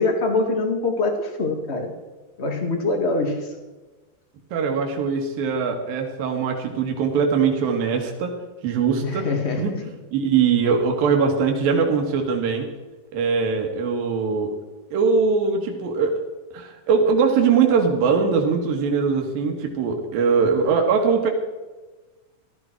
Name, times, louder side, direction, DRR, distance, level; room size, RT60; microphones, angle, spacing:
voice 1, 0.0-1.9 2.4-3.5 9.0-9.8, left 3 dB, 35° left, 4 dB, 1.0 m, -24 dB
voice 2, 4.5-8.4 8.6-9.3 9.6-9.7 10.1-12.7 13.1-14.5 14.9-16.2 16.5-21.3, right 5 dB, 80° right, 3 dB, 3.4 m, -21 dB
16.5 x 13.0 x 4.5 m, 1.2 s
omnidirectional pair, 4.1 m